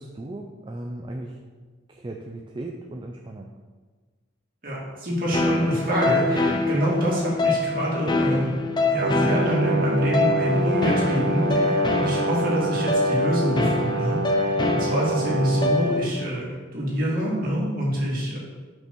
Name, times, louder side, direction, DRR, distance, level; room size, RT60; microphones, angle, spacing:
voice 1, 0.0-1.4 1.9-3.5, right 1 dB, 25° right, 1 dB, 0.5 m, -36 dB
voice 2, 4.6-8.5 8.9-18.4, equal, 45° right, -5 dB, 2.3 m, -25 dB
sound 1, 5.3-16.3, left 2 dB, 25° left, 0.6 m, -25 dB
Brass instrument, 9.0-16.0, right 2 dB, 75° right, 0.5 m, -27 dB
5.7 x 5.4 x 6.0 m, 1.4 s
head